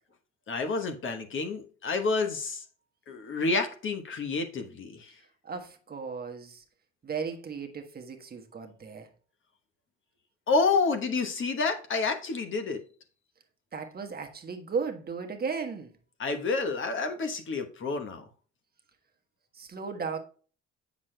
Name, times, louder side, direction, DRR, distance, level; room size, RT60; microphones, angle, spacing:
voice 1, 0.5-2.6 3.1-5.1 10.5-12.8 16.2-18.2, left 4 dB, 45° left, 1.1 m, -29 dB
voice 2, 5.4-6.6 7.0-9.1 13.7-15.9 19.5-20.2, right 5 dB, 30° right, 1.1 m, -35 dB
7.2 x 6.0 x 2.2 m
supercardioid pair, 85°, 29 cm